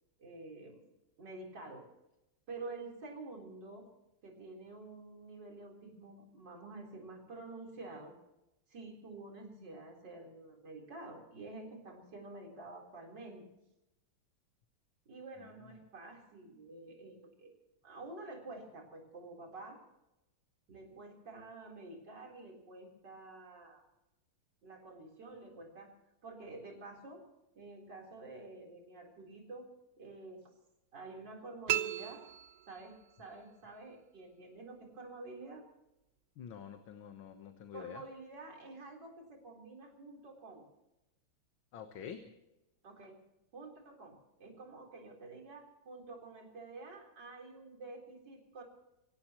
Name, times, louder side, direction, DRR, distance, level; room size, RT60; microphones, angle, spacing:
voice 1, 0.2-0.8 1.2-1.8 2.5-3.9 4.2-8.1 8.7-13.4 15.1-17.5 17.8-19.8 20.7-23.8 24.6-25.9 26.2-27.2 27.6-29.7 30.0-30.5 30.9-32.2 32.7-35.6 37.7-40.6 42.8-43.2 43.5-48.6, right 3 dB, 55° right, 0 dB, 4.6 m, -49 dB
sound 1, 31.7-33.2, right 13 dB, 90° right, 0.7 m, -36 dB
voice 2, 36.4-38.0 41.7-42.2, left 8 dB, 70° left, 6 dB, 2.0 m, -47 dB
26.0 x 17.5 x 3.0 m, 0.93 s
omnidirectional pair, 2.3 m